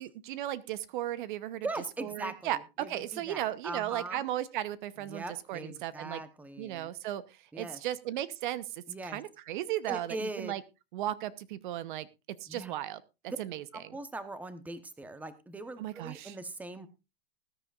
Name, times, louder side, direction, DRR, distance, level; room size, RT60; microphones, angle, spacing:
voice 1, 0.0-1.7 2.0-6.2 6.6-7.2 7.5-10.6 10.9-12.1 12.4-13.0 13.4-14.0 15.8-16.4, right 13 dB, 55° right, 16 dB, 0.9 m, -36 dB
voice 2, 1.6-4.2 5.0-6.9 7.5-7.8 8.9-9.2 9.9-10.5 12.5-12.7 13.3-13.4 13.7-16.9, right 2 dB, 5° right, 11 dB, 1.0 m, -41 dB
20.0 x 10.0 x 2.5 m, 0.27 s
hypercardioid pair, 135°, 30 cm